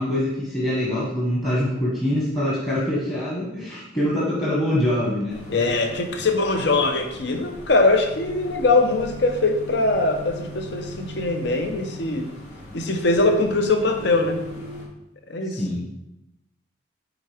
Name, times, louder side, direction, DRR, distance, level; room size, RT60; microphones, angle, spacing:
voice 1, 0.0-5.3 15.5-15.8, left 1 dB, 20° left, -6 dB, 1.3 m, -24 dB
sound 1, 5.3-14.9, left 1 dB, 85° left, 1.7 m, -39 dB
voice 2, 5.5-12.3 12.7-14.4 15.3-15.8, left 2 dB, 60° left, 5 dB, 0.7 m, -22 dB
8.8 x 3.7 x 3.4 m, 0.89 s
head